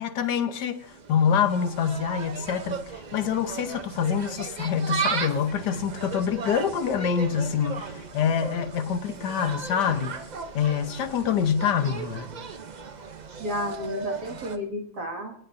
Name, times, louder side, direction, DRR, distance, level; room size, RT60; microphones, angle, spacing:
voice 1, 0.0-10.2 10.5-12.3, left 7 dB, 75° left, 1.5 m, -26 dB
Insect, 0.7-14.6, right 5 dB, 85° right, 0.4 m, -36 dB
voice 2, 13.3-15.4, left 1 dB, 65° right, 2.5 m, -32 dB
26.5 x 9.6 x 2.6 m
omnidirectional pair, 1.8 m